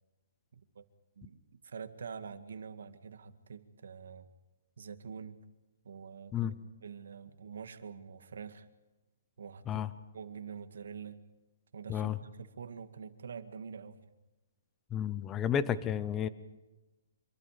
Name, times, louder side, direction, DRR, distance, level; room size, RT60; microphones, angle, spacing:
voice 1, 0.5-0.8 1.2-4.3 4.8-5.4 5.8-6.5 6.8-8.7 9.4-9.8 10.1-11.2 11.7-14.0, right 6 dB, 70° right, 8 dB, 2.0 m, -46 dB
voice 2, 14.9-16.3, left 9 dB, 10° left, 16 dB, 0.7 m, -31 dB
26.0 x 24.5 x 5.1 m, 1.1 s
hypercardioid pair, 175°, 0 cm